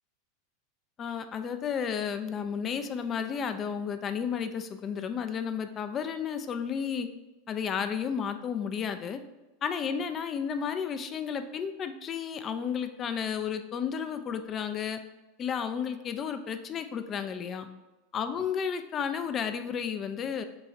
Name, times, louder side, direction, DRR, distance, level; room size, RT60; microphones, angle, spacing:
voice 1, 1.0-7.1 7.5-9.2 9.6-15.0 15.4-17.7 18.1-20.4, left 7 dB, 35° left, 9 dB, 0.4 m, -32 dB
5.9 x 2.3 x 2.7 m, 1.1 s
hypercardioid pair, 90°, 0 cm